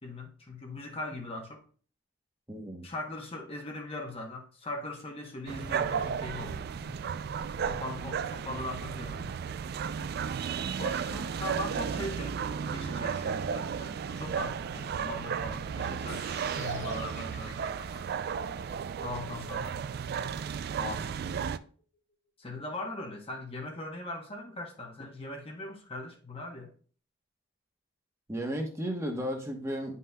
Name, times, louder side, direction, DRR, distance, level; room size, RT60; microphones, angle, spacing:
voice 1, 0.0-1.6 2.8-6.9 7.7-9.3 10.8-16.2 16.5-17.7 19.0-19.8 20.8-21.2 22.4-26.7, left 2 dB, 30° left, 0.9 m, -40 dB
voice 2, 2.5-2.9 28.3-30.0, equal, 15° right, 1.0 m, -34 dB
sound 1, 5.5-21.6, right 7 dB, 50° right, 0.3 m, -34 dB
sound 2, 16.1-22.1, left 3 dB, 55° left, 2.2 m, -50 dB
9.2 x 5.5 x 2.2 m
head